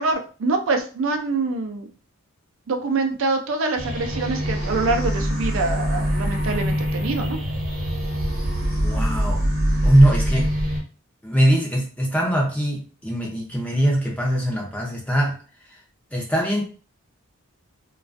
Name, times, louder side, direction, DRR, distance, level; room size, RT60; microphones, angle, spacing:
voice 1, 0.0-1.9 2.7-7.4, right 3 dB, 65° right, 4 dB, 0.4 m, -25 dB
sound 1, 3.7-10.8, equal, 80° right, 0.8 m, -24 dB
voice 2, 8.8-9.5 9.8-10.8 11.2-15.4 15.6-15.8 16.1-16.6, right 1 dB, 5° left, -1 dB, 0.5 m, -21 dB
2.4 x 2.2 x 2.4 m, 0.37 s
head